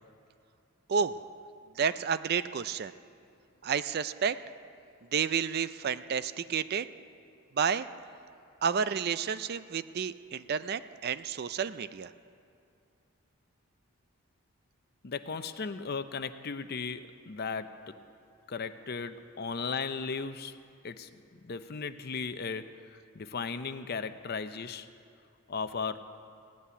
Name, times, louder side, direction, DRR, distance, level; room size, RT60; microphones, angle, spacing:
voice 1, 1.8-2.9 3.6-4.4 5.1-6.9 7.6-7.9 8.6-12.1, right 6 dB, 45° right, 14 dB, 0.4 m, -30 dB
voice 2, 15.0-18.0 18.5-20.6 20.8-24.9 25.5-26.0, left 5 dB, 45° left, 10 dB, 0.6 m, -36 dB
16.5 x 8.3 x 9.9 m, 2.5 s
head